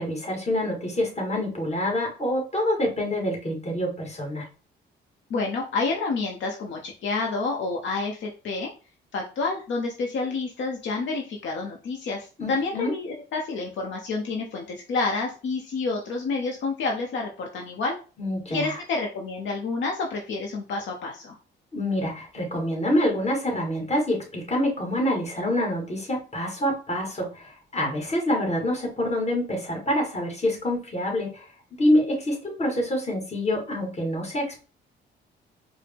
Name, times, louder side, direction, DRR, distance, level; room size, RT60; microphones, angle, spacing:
voice 1, 0.0-4.4 12.4-12.9 18.2-18.8 21.7-31.5 31.8-34.6, left 1 dB, 35° left, 0 dB, 1.8 m, -26 dB
voice 2, 5.3-8.7 9.1-18.0 18.5-21.4, left 3 dB, 70° left, 1 dB, 0.7 m, -29 dB
4.6 x 2.1 x 3.4 m, 0.35 s
cardioid pair, 90°, 20 cm